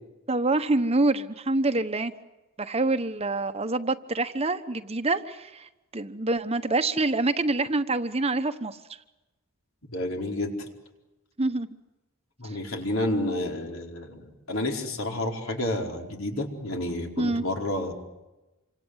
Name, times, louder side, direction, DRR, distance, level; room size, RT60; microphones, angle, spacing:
voice 1, 0.3-2.1 2.6-8.8 11.4-11.7 17.2-17.4, right 2 dB, 30° right, 10 dB, 1.1 m, -26 dB
voice 2, 9.9-10.5 12.4-17.9, left 1 dB, 70° left, 2 dB, 4.6 m, -30 dB
28.0 x 25.5 x 8.1 m, 1.0 s
head